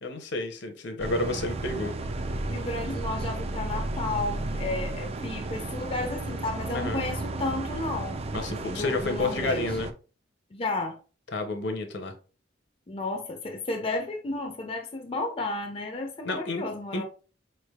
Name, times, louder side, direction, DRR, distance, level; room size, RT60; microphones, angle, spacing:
voice 1, 0.0-2.0 6.7-7.0 8.3-9.9 11.3-12.1 16.2-16.6 16.9-17.0, left 2 dB, 65° left, 0.7 m, -30 dB
sound 1, 1.0-9.9, right 2 dB, 35° right, 0.3 m, -33 dB
voice 2, 2.5-8.1 8.7-9.7 10.5-11.0 12.9-17.0, left 2 dB, 30° left, 0.5 m, -32 dB
4.7 x 3.2 x 2.3 m
head